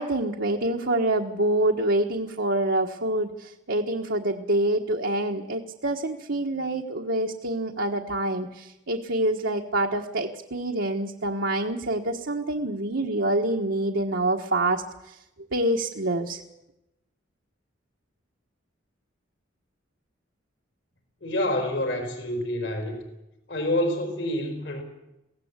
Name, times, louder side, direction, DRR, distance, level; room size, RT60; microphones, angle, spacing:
voice 1, 0.0-15.2 15.5-16.4, right 1 dB, 70° right, 0 dB, 1.4 m, -26 dB
voice 2, 21.2-23.0 23.5-24.8, left 1 dB, 65° left, 5 dB, 4.5 m, -27 dB
23.0 x 17.0 x 8.2 m, 0.93 s
head